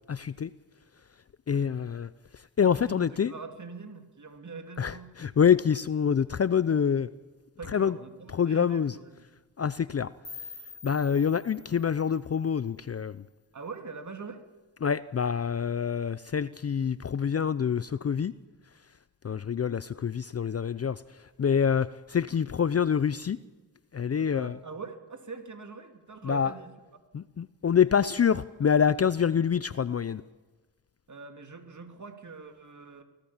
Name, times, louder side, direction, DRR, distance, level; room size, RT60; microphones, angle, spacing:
voice 1, 0.1-0.5 1.5-2.1 2.6-3.3 4.8-7.1 7.7-7.9 8.4-8.9 9.6-10.1 10.8-13.2 14.8-18.3 19.2-21.0 21.4-23.4 23.9-24.5 26.2-26.5 27.1-30.2, left 7 dB, 35° left, 17 dB, 0.6 m, -26 dB
voice 2, 2.6-5.2 7.6-9.3 13.5-14.4 22.6-22.7 24.1-27.0 31.1-33.0, right 4 dB, 40° right, 6 dB, 2.9 m, -43 dB
sound 1, 10.2-13.2, left 5 dB, 60° left, 4.6 m, -47 dB
24.5 x 17.5 x 7.3 m, 1.2 s
cardioid pair, 70°, 45 cm